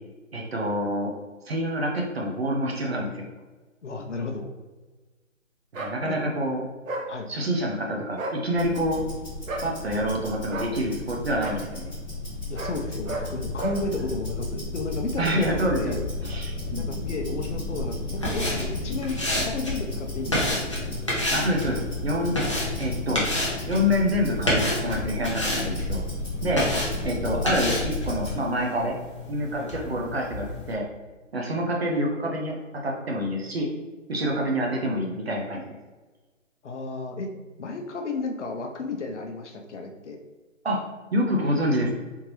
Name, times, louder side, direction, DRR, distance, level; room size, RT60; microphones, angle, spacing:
voice 1, 0.3-1.1 1.5-3.3 5.7-6.6 7.3-9.1 9.6-11.9 15.2-17.0 21.3-22.4 22.8-23.3 23.7-26.0 26.4-26.6 27.0-29.0 29.3-30.9 31.3-32.6 32.8-33.7 34.1-35.6 40.6-40.8 41.1-41.9, equal, 50° right, -1 dB, 0.7 m, -27 dB
voice 2, 3.8-4.5 6.1-6.2 7.1-7.3 12.5-16.0 16.8-20.6 26.5-26.8 29.6-29.7 34.2-34.3 36.6-37.3 37.6-40.2, left 3 dB, 60° left, 3 dB, 0.7 m, -33 dB
sound 1, 5.7-6.0 6.9-7.1 8.1-8.4 9.5-9.7 10.5-10.7 11.4-11.6 12.5-12.8 13.0-13.3 13.6-13.8, right 3 dB, 80° right, 0.9 m, -32 dB
Tick-tock, 8.5-28.4, left 2 dB, 5° left, 0.9 m, -33 dB
sound 2, 18.1-30.7, left 1 dB, 25° left, 0.5 m, -30 dB
3.6 x 2.9 x 3.0 m, 1.3 s
hypercardioid pair, 165°, 39 cm